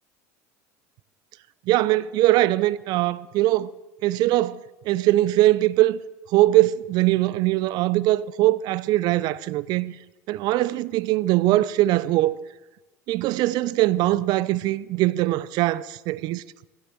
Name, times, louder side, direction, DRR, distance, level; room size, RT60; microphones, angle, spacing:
voice 1, 1.7-3.7 4.0-4.6 4.9-6.0 6.3-9.9 10.3-12.4 13.1-16.4, right 16 dB, 55° right, 0.5 m, -21 dB
15.0 x 8.4 x 7.4 m
hypercardioid pair, 90°, 8 cm